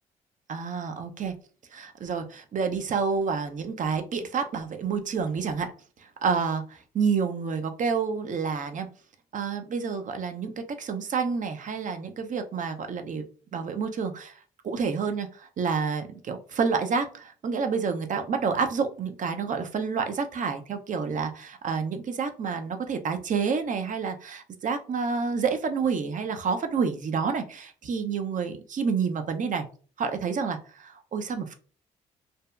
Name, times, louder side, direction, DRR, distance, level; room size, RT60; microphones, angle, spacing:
voice 1, 0.5-1.3 1.7-5.7 6.0-8.9 9.3-13.2 13.5-29.7 30.0-31.5, right 5 dB, 50° right, 7 dB, 0.5 m, -29 dB
2.6 x 2.1 x 2.3 m, 0.39 s
hypercardioid pair, 50°, 17 cm